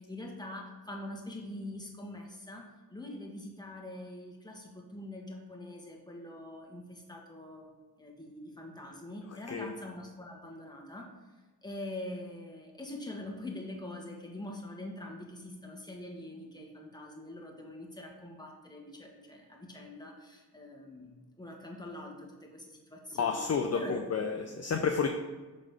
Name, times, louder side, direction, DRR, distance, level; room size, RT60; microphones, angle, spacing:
voice 1, 0.0-7.7 8.0-11.1 11.6-24.0, left 1 dB, 10° left, 0 dB, 1.6 m, -44 dB
voice 2, 23.1-25.1, left 5 dB, 40° left, 4 dB, 0.6 m, -30 dB
6.3 x 3.8 x 5.1 m, 1.3 s
cardioid pair, 55°, 40 cm